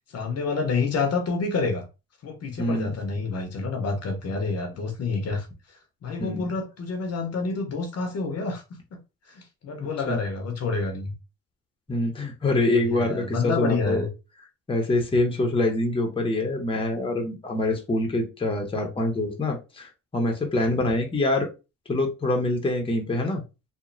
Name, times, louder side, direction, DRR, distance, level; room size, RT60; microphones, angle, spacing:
voice 1, 0.1-1.9 2.2-8.6 8.9-9.0 9.3-11.1 12.7-14.1 15.3-15.4, left 4 dB, 55° left, 0.7 m, -28 dB
voice 2, 2.6-2.9 6.2-6.5 10.1-10.2 11.9-14.1 14.7-21.5 21.9-23.4, left 2 dB, 20° left, 0.7 m, -25 dB
2.9 x 2.1 x 2.5 m
cardioid pair, 90°, 30 cm